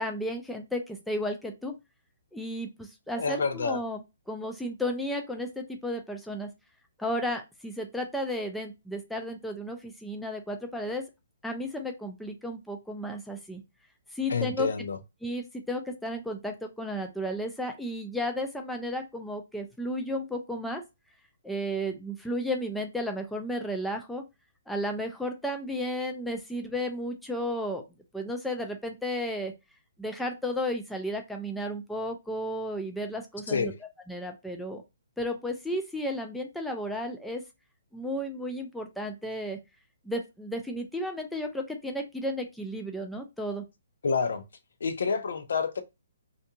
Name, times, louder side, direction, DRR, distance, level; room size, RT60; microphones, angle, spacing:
voice 1, 0.0-1.7 2.3-6.5 7.0-11.0 11.4-13.6 14.1-14.7 15.2-20.8 21.4-24.2 24.7-27.8 28.1-29.5 30.0-33.7 34.1-34.8 35.2-37.4 37.9-39.6 40.0-43.6, equal, ahead, 0.3 m, -33 dB
voice 2, 3.1-3.8 14.3-15.0 33.5-33.8 44.0-44.4 44.8-45.8, left 5 dB, 70° left, 0.6 m, -28 dB
2.5 x 2.3 x 2.7 m
hypercardioid pair, 165°, 0 cm